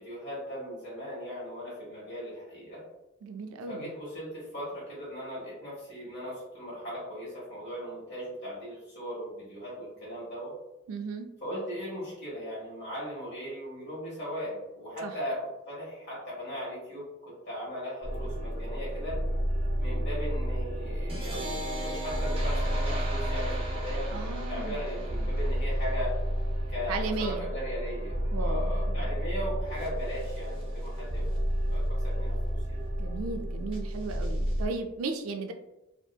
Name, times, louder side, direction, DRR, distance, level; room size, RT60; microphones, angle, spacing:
voice 1, 0.0-2.8 3.6-10.5 11.4-19.2 19.8-24.2 24.5-26.1 26.7-31.2 31.7-32.8, equal, 55° left, -6 dB, 1.4 m, -38 dB
voice 2, 3.2-3.9 10.9-11.3 15.0-15.1 24.1-24.8 25.2-25.3 26.9-27.5 28.3-29.2 33.0-35.5, right 4 dB, 80° right, 5 dB, 0.3 m, -36 dB
sound 1, 18.0-34.7, equal, 25° right, 0.5 m, -31 dB
2.7 x 2.4 x 2.2 m, 0.96 s
head